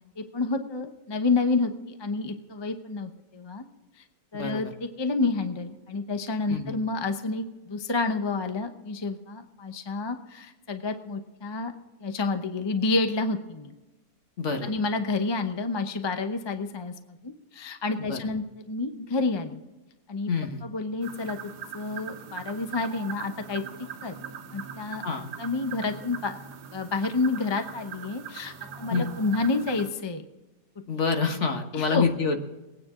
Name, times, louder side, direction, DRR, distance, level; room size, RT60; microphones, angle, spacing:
voice 1, 0.2-3.7 4.0-4.1 4.3-11.7 12.0-13.7 14.6-19.6 20.1-20.3 20.6-23.6 24.0-24.1 24.5-25.0 25.4-26.4 26.7-30.2 30.8-30.9 31.7-32.1, left 3 dB, 30° left, 7 dB, 0.5 m, -29 dB
voice 2, 4.3-4.7 6.5-6.7 14.4-14.7 18.1-18.2 20.3-20.6 25.0-25.3 28.9-29.1 30.9-32.4, left 4 dB, 45° left, 5 dB, 1.5 m, -27 dB
sound 1, 21.0-29.9, right 8 dB, 75° right, 1.6 m, -41 dB
22.5 x 9.7 x 3.7 m, 1.1 s
omnidirectional pair, 1.8 m